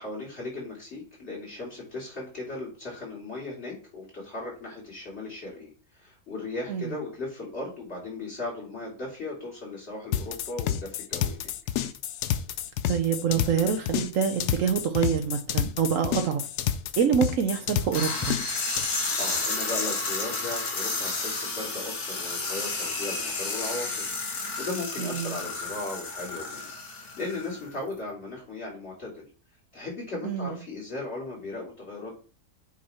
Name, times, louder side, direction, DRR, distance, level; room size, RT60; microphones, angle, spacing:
voice 1, 0.0-5.7 6.0-11.5 17.0-17.1 18.8-29.3 29.7-32.2, left 2 dB, 45° left, -4 dB, 3.2 m, -37 dB
sound 1, 10.1-18.9, left 10 dB, 90° left, 1.1 m, -29 dB
voice 2, 12.9-16.5 17.0-18.4 25.0-25.4 30.2-30.5, right 7 dB, 65° right, 6 dB, 1.0 m, -26 dB
sound 2, 17.9-27.7, left 3 dB, 70° left, 2.1 m, -31 dB
8.4 x 3.0 x 4.2 m, 0.37 s
omnidirectional pair, 1.6 m